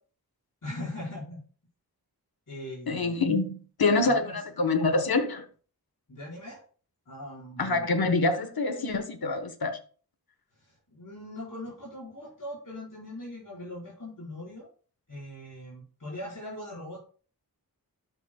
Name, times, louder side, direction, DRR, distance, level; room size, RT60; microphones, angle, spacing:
voice 1, 0.6-1.4 2.5-3.3 4.0-4.4 6.1-6.6 7.1-8.1 10.6-14.7 15.1-17.0, left 1 dB, 60° left, -6 dB, 4.8 m, -40 dB
voice 2, 2.9-5.4 7.6-9.8, left 3 dB, 75° left, 8 dB, 1.2 m, -26 dB
12.5 x 7.1 x 2.3 m, 0.40 s
wide cardioid pair, 70°, 36 cm